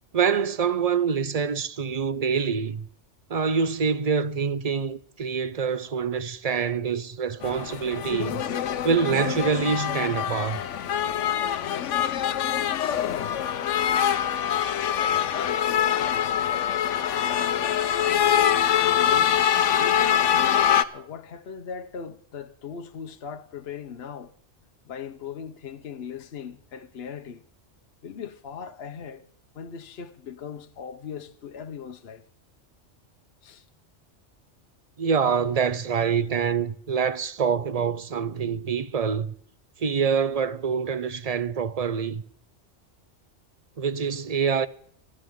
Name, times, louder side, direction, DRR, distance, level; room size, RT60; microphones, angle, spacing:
voice 1, 0.1-2.9 3.3-8.4 8.8-10.6 35.0-39.3 39.8-42.2 43.8-44.7, right 6 dB, 40° right, 0.6 m, -25 dB
sound 1, 7.4-20.8, left 9 dB, 90° left, 1.1 m, -24 dB
voice 2, 15.2-16.3 17.2-17.8 18.9-19.4 19.8-20.3 20.9-24.3 24.8-27.4 28.0-29.2 29.5-32.2 33.4-33.7, left 7 dB, 60° left, 1.1 m, -39 dB
24.5 x 11.0 x 3.7 m
omnidirectional pair, 1.2 m